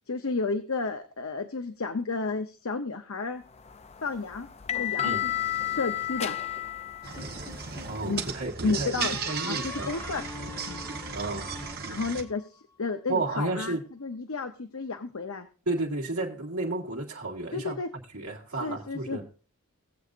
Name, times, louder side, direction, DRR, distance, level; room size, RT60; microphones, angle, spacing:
voice 1, 0.1-3.4 4.0-5.3 5.6-6.4 8.1-8.2 8.6-9.2 9.5-10.2 10.7-10.8 11.9-15.5 17.5-17.9 18.6-19.2, left 3 dB, 70° left, 7 dB, 0.8 m, -32 dB
sound 1, 3.6-8.4, left 12 dB, 30° left, 0.4 m, -33 dB
sound 2, 7.0-12.2, right 5 dB, 45° right, 1.2 m, -36 dB
sound 3, 7.2-8.0 9.0-12.5, left 2 dB, 10° left, 4.3 m, -42 dB
voice 2, 7.9-9.9 11.1-11.5 13.1-13.8 15.7-17.8 18.1-19.2, right 2 dB, 80° right, -3 dB, 2.1 m, -32 dB
19.0 x 7.9 x 2.6 m, 0.38 s
head